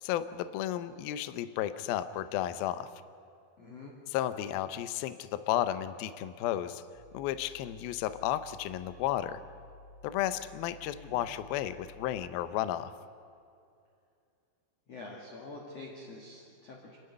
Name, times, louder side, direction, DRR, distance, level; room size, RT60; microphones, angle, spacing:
voice 1, 0.0-2.9 4.1-6.8 7.1-9.4 10.0-12.9, left 12 dB, 85° left, 13 dB, 2.1 m, -33 dB
voice 2, 3.6-3.9 10.9-11.2 14.9-17.0, left 2 dB, 45° left, -1 dB, 2.5 m, -46 dB
sound 1, 6.9-12.3, left 2 dB, 15° left, 6.5 m, -54 dB
29.5 x 12.0 x 9.7 m, 2.5 s
omnidirectional pair, 5.3 m